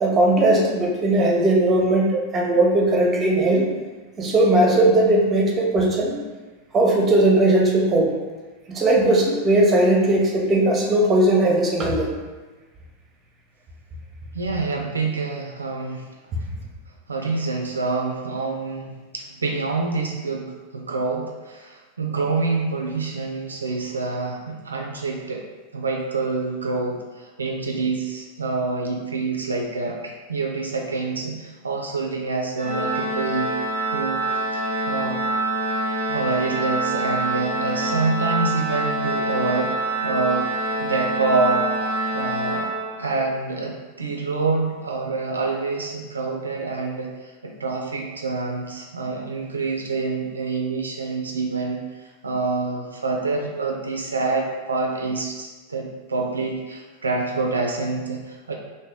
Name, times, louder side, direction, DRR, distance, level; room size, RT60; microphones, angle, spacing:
voice 1, 0.0-3.7 4.2-6.2 6.7-8.1 8.7-12.1, right 1 dB, 20° right, -1 dB, 0.7 m, -18 dB
voice 2, 14.3-16.0 17.1-25.4 25.7-33.5 33.9-34.3 34.5-35.2 36.0-39.7 40.0-40.5 40.8-41.7 42.1-42.7 43.0-58.5, right 3 dB, 75° right, 0 dB, 0.3 m, -26 dB
Organ, 32.6-43.3, right 2 dB, 75° left, 1.5 m, -26 dB
2.9 x 2.6 x 3.6 m, 1.3 s
figure-of-eight pair, 90°, 0 cm